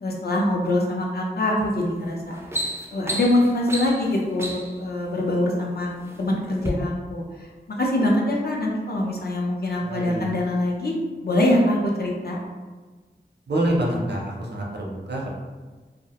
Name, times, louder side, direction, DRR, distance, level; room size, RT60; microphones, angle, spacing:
voice 1, 0.0-2.3 2.9-5.9 6.2-10.9 11.2-12.4, left 1 dB, 60° left, -2 dB, 0.5 m, -24 dB
sound 1, 1.6-1.8 2.2-4.8 5.6-6.2 6.6-6.7, right 1 dB, 15° right, 0.3 m, -31 dB
voice 2, 9.8-10.3 13.5-15.3, right 1 dB, 75° right, -2 dB, 0.5 m, -26 dB
2.3 x 2.1 x 2.8 m, 1.3 s
wide cardioid pair, 60°, 18 cm